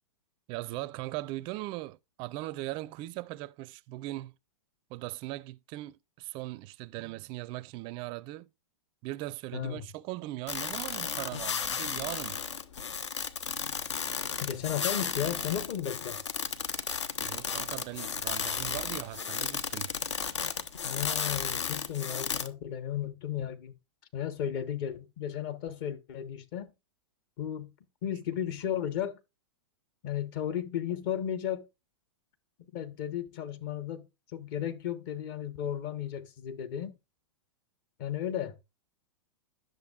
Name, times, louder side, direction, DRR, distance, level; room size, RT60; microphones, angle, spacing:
voice 1, 0.5-4.3 4.9-8.5 9.0-12.4 17.2-19.9, right 17 dB, 35° right, 0.4 m, -39 dB
voice 2, 9.5-9.9 14.4-16.2 20.8-23.7 24.1-26.7 27.4-27.7 28.0-29.2 30.0-31.7 32.7-34.1 34.3-36.9 38.0-38.6, left 10 dB, 45° left, 1.1 m, -34 dB
sound 1, 10.5-22.5, left 6 dB, 75° left, 0.8 m, -34 dB
10.5 x 6.4 x 2.4 m
hypercardioid pair, 110°, 15 cm